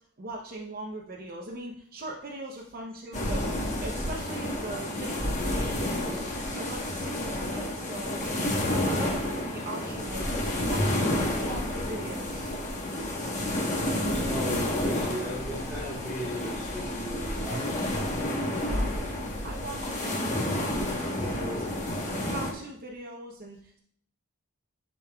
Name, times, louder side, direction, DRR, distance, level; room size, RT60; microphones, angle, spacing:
voice 1, 0.2-8.2 8.6-10.3 10.6-11.1 11.4-12.5 18.6-19.0 19.4-23.8, right 1 dB, 40° right, -1 dB, 0.7 m, -40 dB
sound 1, 3.1-22.5, left 1 dB, 35° left, 1.1 m, -30 dB
voice 2, 14.1-18.0, equal, 5° left, -11 dB, 2.4 m, -37 dB
11.0 x 5.3 x 2.3 m, 0.64 s
head